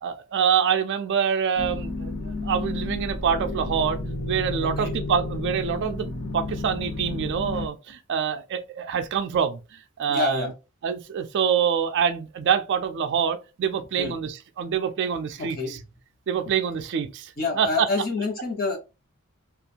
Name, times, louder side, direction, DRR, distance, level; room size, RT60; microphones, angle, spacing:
voice 1, 0.0-10.5 10.8-15.8 16.3-17.9, right 7 dB, 50° right, 0.3 m, -26 dB
sound 1, 1.6-7.7, left 2 dB, 65° left, 0.8 m, -31 dB
voice 2, 4.6-4.9 10.1-10.5 14.0-14.1 15.6-15.7 17.4-18.8, left 4 dB, 45° left, 1.0 m, -27 dB
2.5 x 2.4 x 2.7 m
head